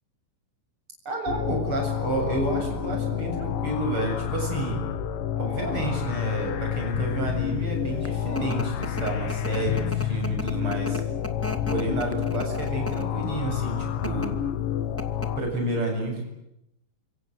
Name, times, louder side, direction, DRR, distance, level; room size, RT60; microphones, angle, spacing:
voice 1, 1.1-4.8 5.4-11.0 11.7-14.4 15.4-16.2, right 2 dB, 35° right, 2 dB, 8.6 m, -30 dB
sound 1, 1.3-15.4, left 10 dB, 80° left, 3.1 m, -29 dB
sound 2, 7.7-13.2 13.9-14.3 14.7-14.8 15.0-15.5, equal, 15° left, 0.5 m, -36 dB
29.0 x 26.0 x 8.0 m, 0.83 s
omnidirectional pair, 4.0 m